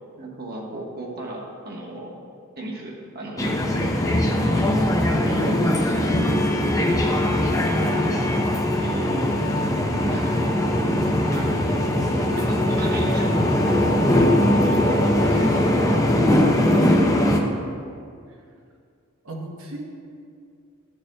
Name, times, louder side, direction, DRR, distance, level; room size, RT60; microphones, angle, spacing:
voice 1, 0.2-2.1 2.6-4.4 5.1-6.4 8.0-8.2 8.8-9.4 9.8-11.0 11.3-11.5 12.2-13.4 14.5-16.5 16.8-16.9, right 1 dB, 45° right, -2 dB, 1.2 m, -36 dB
sound 1, 3.4-17.4, left 1 dB, 15° left, 0.5 m, -20 dB
voice 2, 5.2-5.8 7.7-8.0 19.2-19.8, right 1 dB, 65° right, 0 dB, 1.1 m, -34 dB
12.5 x 6.8 x 2.2 m, 2.3 s
head